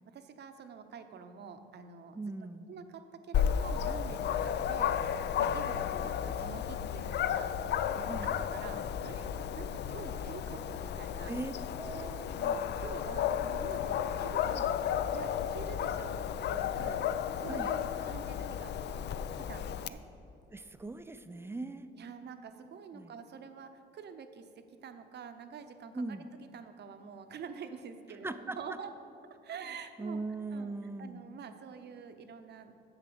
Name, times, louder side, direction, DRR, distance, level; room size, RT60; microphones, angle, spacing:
voice 1, 0.1-2.2 2.7-11.3 12.4-14.8 15.1-16.2 16.5-17.0 17.4-18.7 19.3-20.0 22.0-28.9 29.4-30.2 30.5-30.7 31.0-32.7, right 6 dB, 60° right, 8 dB, 0.8 m, -47 dB
voice 2, 2.1-2.7 8.1-8.3 11.3-12.3 17.5-17.7 20.5-21.9 22.9-23.1 25.9-26.3 28.2-28.6 30.0-31.2, right 3 dB, 10° right, 10 dB, 0.5 m, -39 dB
Dog, 3.3-19.9, left 9 dB, 60° left, 0.4 m, -33 dB
7.3 x 7.0 x 6.9 m, 2.7 s
cardioid pair, 90°, 20 cm